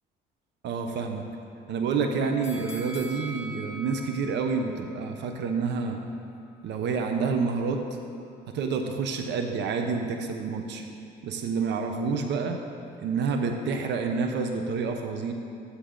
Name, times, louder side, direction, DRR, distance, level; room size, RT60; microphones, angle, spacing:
voice 1, 0.6-1.3 1.7-6.0 6.6-7.9 8.5-10.8 11.2-12.6 13.0-15.3, right 5 dB, 70° right, 5 dB, 1.0 m, -28 dB
sound 1, 2.4-5.5 5.9-6.0, equal, 35° left, 2.8 m, -43 dB
14.0 x 10.0 x 3.9 m, 2.5 s
cardioid pair, 85°, 19 cm